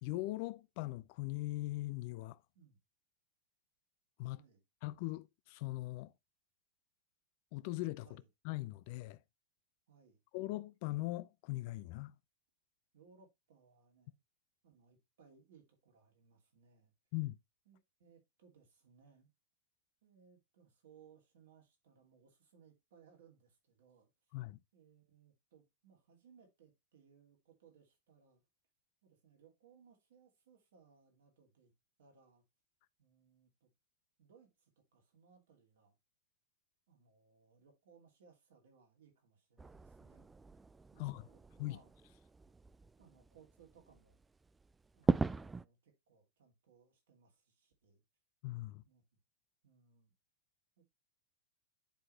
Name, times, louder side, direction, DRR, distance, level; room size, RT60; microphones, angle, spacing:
voice 1, 0.0-2.4 4.2-4.4 4.8-6.1 7.5-9.2 10.3-12.1 17.1-17.4 24.3-24.6 41.0-41.3 41.6-41.8 48.4-48.8, left 18 dB, 55° left, 0.5 m, -40 dB
voice 2, 9.9-10.2 12.9-14.2 14.6-16.9 17.7-19.3 20.0-24.1 24.7-28.4 29.0-31.7 32.0-32.4 33.0-33.7 34.2-36.0 36.9-40.3 40.9-41.9 42.5-42.6 43.0-44.2 44.9-48.0 48.8-49.0 49.6-50.1 50.8-50.9, right 6 dB, 75° right, 2.7 m, -66 dB
sound 1, 39.6-45.6, right 4 dB, 15° right, 0.3 m, -39 dB
10.0 x 3.9 x 3.2 m
hypercardioid pair, 105°, 0 cm